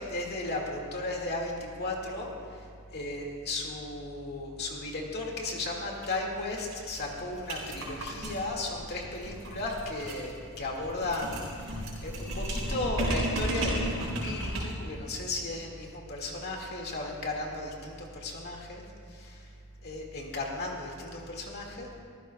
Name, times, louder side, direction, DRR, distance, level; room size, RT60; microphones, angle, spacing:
voice 1, 0.0-2.7 2.9-19.5 19.8-22.0, left 2 dB, 50° left, 0 dB, 2.0 m, -35 dB
sound 1, 5.9-6.1 6.4-6.5 6.7-14.9, right 1 dB, 70° right, 4.0 m, -34 dB
23.5 x 15.0 x 2.3 m, 2.2 s
head